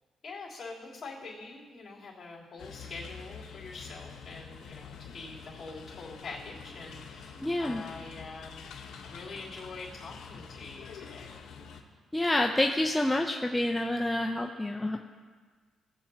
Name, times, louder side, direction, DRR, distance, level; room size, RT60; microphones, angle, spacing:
voice 1, 0.2-8.8 9.1-11.4, left 3 dB, 40° left, -7 dB, 3.2 m, -44 dB
sound 1, 2.6-11.8, left 6 dB, 75° left, 1.0 m, -47 dB
voice 2, 7.4-7.8 12.1-15.0, left 1 dB, 10° left, 2 dB, 0.5 m, -28 dB
17.5 x 7.8 x 2.8 m, 1.5 s
cardioid pair, 90°, 0 cm